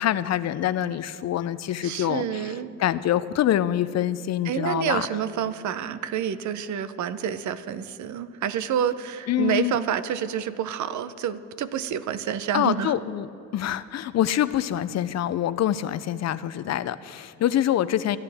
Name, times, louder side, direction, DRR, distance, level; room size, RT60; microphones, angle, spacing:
voice 1, 0.0-5.1 9.3-9.8 12.5-18.2, left 11 dB, 60° left, 15 dB, 0.5 m, -25 dB
voice 2, 1.8-2.7 4.4-12.9, right 9 dB, 70° right, 13 dB, 0.8 m, -28 dB
25.5 x 10.5 x 3.5 m, 2.4 s
cardioid pair, 90°, 30 cm